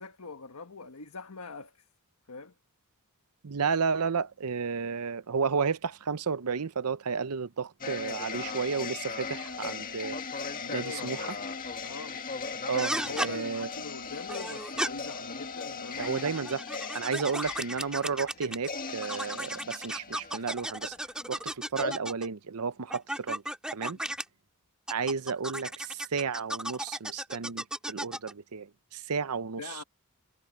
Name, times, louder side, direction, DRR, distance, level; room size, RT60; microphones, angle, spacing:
voice 1, 0.0-1.9 2.3-2.5 10.6-11.5 11.8-12.2 13.1-16.1 29.6-29.8, left 4 dB, 85° left, 1.3 m, -42 dB
voice 2, 3.4-10.2 10.7-11.3 12.7-13.7 16.0-16.6 16.9-21.0 21.3-23.4 23.7-24.0 24.9-29.8, right 5 dB, 85° right, 0.7 m, -32 dB
sound 1, 7.8-21.3 21.7-21.9, left 4 dB, 40° left, 1.9 m, -38 dB
sound 2, 12.8-13.3 14.3-14.9 15.9-18.7 19.0-22.3 22.9-24.2 24.9-28.3, right 1 dB, 5° right, 2.2 m, -35 dB
head